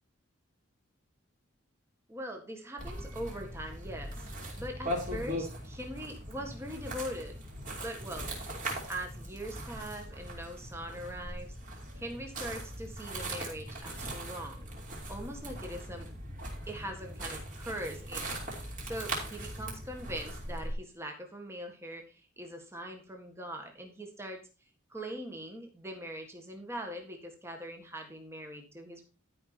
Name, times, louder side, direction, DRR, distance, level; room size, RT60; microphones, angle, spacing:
voice 1, 2.1-4.3 4.6-7.4 7.8-8.3 8.9-11.6 12.0-14.7 15.1-16.1 16.7-24.4 24.9-29.0, equal, 10° right, 3 dB, 1.7 m, -41 dB
sound 1, 2.8-20.7, right 1 dB, 40° right, 3.3 m, -40 dB
12.0 x 5.4 x 4.4 m, 0.33 s
head